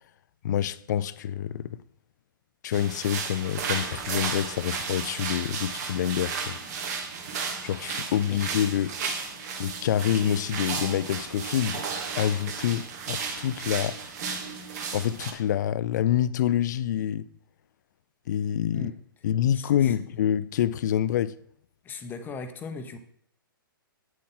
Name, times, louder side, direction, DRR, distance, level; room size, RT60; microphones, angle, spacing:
voice 1, 0.4-1.8 2.6-6.6 7.6-9.0 9.6-11.9 12.2-14.0 14.9-17.3 18.3-18.9 19.2-21.4, left 10 dB, 50° left, 0.5 m, -27 dB
sound 1, 2.7-15.3, right 5 dB, 45° right, 1.5 m, -34 dB
voice 2, 19.5-20.0 21.8-23.0, left 4 dB, 15° left, 0.9 m, -38 dB
8.7 x 7.6 x 3.8 m
figure-of-eight pair, 120°, 12 cm